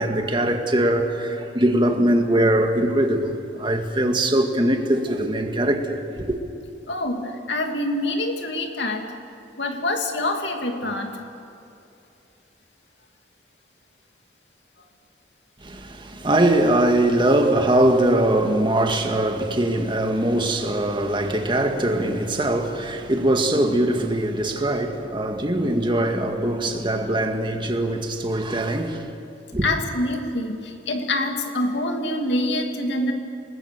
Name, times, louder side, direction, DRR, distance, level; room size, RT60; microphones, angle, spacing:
voice 1, 0.0-6.0 15.6-29.0 29.5-29.6, right 1 dB, 25° right, 1.9 m, -21 dB
voice 2, 6.9-9.1 9.6-11.1 29.6-33.1, left 1 dB, 75° left, 2.6 m, -25 dB
27.5 x 20.0 x 6.7 m
head